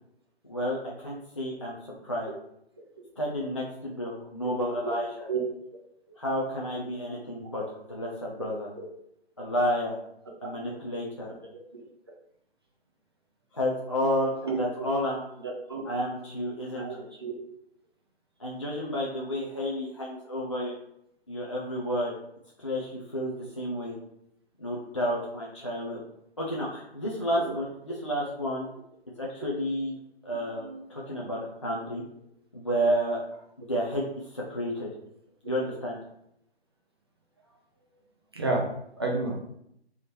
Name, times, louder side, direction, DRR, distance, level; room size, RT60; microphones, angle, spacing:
voice 1, 0.5-1.8 2.0-2.3 3.2-5.3 6.2-7.6 7.9-8.7 9.4-10.0 10.4-11.3 13.5-15.2 15.9-17.0 18.4-20.7 21.3-22.1 22.6-24.0 24.6-26.0 26.4-28.7 29.2-29.9 30.2-32.0 32.5-33.2 33.6-34.0 34.3-34.9 35.4-36.0, equal, 30° left, -4 dB, 0.5 m, -31 dB
voice 2, 14.4-14.9 15.4-15.8 16.7-17.3 27.4-27.5 30.6-30.8 38.3-38.7 39.0-39.3, right 3 dB, 25° right, -1 dB, 0.6 m, -31 dB
3.5 x 2.9 x 4.3 m, 0.75 s
figure-of-eight pair, 150°, 33 cm